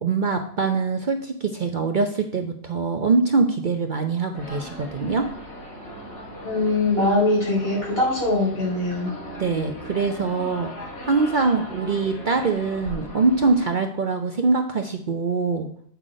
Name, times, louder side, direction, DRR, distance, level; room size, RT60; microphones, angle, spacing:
voice 1, 0.0-5.3 9.4-10.7 11.0-15.7, right 4 dB, 50° right, 5 dB, 0.8 m, -23 dB
sound 1, 4.3-13.7, left 1 dB, 70° left, 3.0 m, -38 dB
voice 2, 6.4-9.1, left 2 dB, 50° left, -6 dB, 4.6 m, -22 dB
8.2 x 5.8 x 5.0 m, 0.65 s
omnidirectional pair, 1.2 m